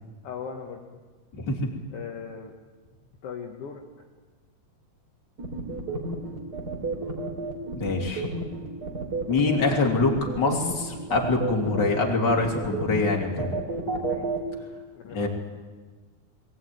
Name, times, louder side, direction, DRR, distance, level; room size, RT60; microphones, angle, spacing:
voice 1, 0.2-1.0 1.9-2.5 3.2-3.8 14.0-14.3 14.9-15.3, left 6 dB, 55° left, 2 dB, 1.7 m, -38 dB
voice 2, 1.3-1.7 7.7-8.3 9.3-13.5 15.1-15.3, left 3 dB, 30° left, 1 dB, 3.1 m, -24 dB
sound 1, 5.4-14.4, right 3 dB, 30° right, 3.3 m, -31 dB
22.0 x 16.5 x 9.3 m, 1.4 s
omnidirectional pair, 4.1 m